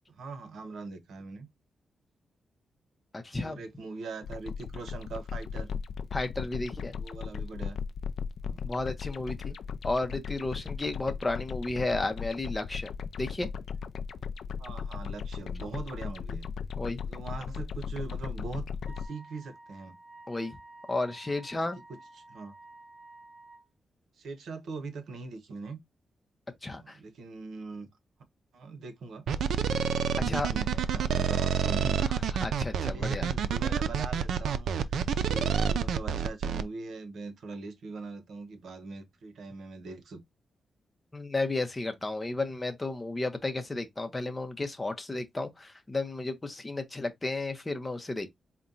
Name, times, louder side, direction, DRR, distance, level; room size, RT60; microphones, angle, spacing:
voice 1, 0.1-1.5 3.4-5.7 6.9-7.8 8.4-8.7 14.6-16.5 17.1-20.0 21.5-22.5 24.2-25.8 26.7-27.9 28.5-29.3 30.1-32.1 32.8-40.2, right 3 dB, 70° right, 0.9 m, -42 dB
voice 2, 3.1-3.6 6.1-7.0 8.6-9.6 9.8-12.9 13.2-13.5 16.8-17.0 20.3-20.5 20.9-21.8 26.6-27.0 30.2-30.5 32.4-33.3 41.1-48.3, left 2 dB, 15° left, 0.7 m, -33 dB
sound 1, 4.2-19.1, left 6 dB, 60° left, 0.4 m, -37 dB
Wind instrument woodwind instrument, 18.8-23.7, right 2 dB, 30° right, 0.8 m, -52 dB
sound 2, 29.3-36.6, right 7 dB, 85° right, 0.4 m, -28 dB
4.2 x 2.2 x 3.8 m
wide cardioid pair, 160°, 0 cm